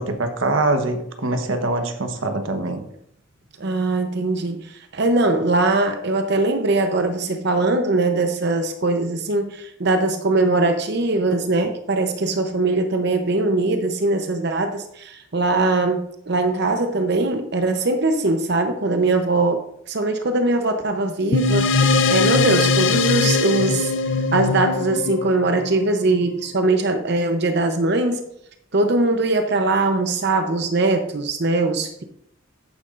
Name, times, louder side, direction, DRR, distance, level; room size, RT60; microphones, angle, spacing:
voice 1, 0.0-2.8, right 2 dB, 75° right, 6 dB, 1.1 m, -23 dB
voice 2, 3.6-23.9 24.3-28.2 28.7-32.0, right 2 dB, 55° right, 6 dB, 0.7 m, -21 dB
sound 1, 21.3-26.1, left 4 dB, 65° left, 0.5 m, -20 dB
10.5 x 9.4 x 2.5 m, 0.75 s
head